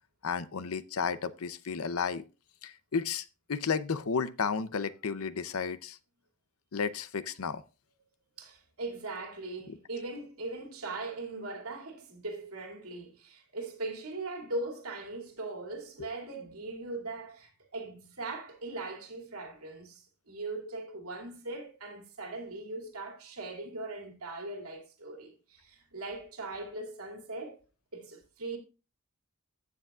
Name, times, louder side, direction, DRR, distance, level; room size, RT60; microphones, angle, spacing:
voice 1, 0.2-2.2 2.6-6.0 6.7-7.6 9.7-9.8 16.0-16.1, left 5 dB, 75° left, 0.6 m, -33 dB
voice 2, 8.4-27.6 27.9-28.6, right 2 dB, 80° right, 2.6 m, -40 dB
15.0 x 6.9 x 2.4 m
head